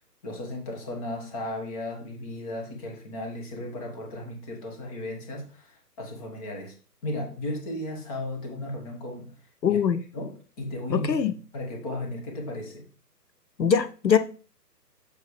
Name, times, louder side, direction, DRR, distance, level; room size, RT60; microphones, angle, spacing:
voice 1, 0.2-6.7 7.0-9.3 9.7-9.8 10.1-12.8, left 1 dB, 20° left, 1.6 m, -35 dB
voice 2, 9.6-10.0 10.9-11.3 13.6-14.2, left 7 dB, 90° left, 0.8 m, -22 dB
7.0 x 4.2 x 4.9 m
figure-of-eight pair, 145°, 49 cm